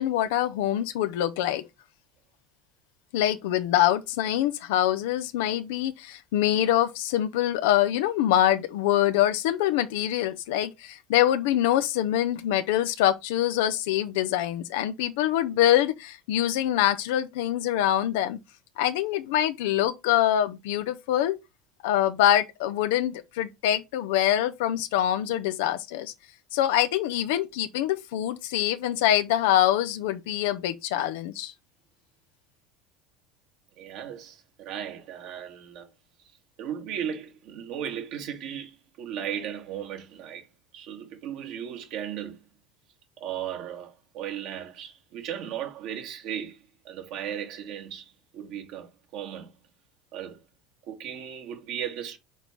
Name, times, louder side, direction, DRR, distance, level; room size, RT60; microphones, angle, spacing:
voice 1, 0.0-1.7 3.1-18.4 18.8-21.4 21.8-26.1 26.5-31.5, left 12 dB, 65° left, 0.8 m, -24 dB
voice 2, 33.8-35.9 36.6-40.5 40.7-42.4 43.2-49.5 50.1-50.4 50.8-52.2, right 9 dB, 55° right, 2.0 m, -36 dB
6.4 x 4.6 x 5.2 m
figure-of-eight pair, 70°, 0 cm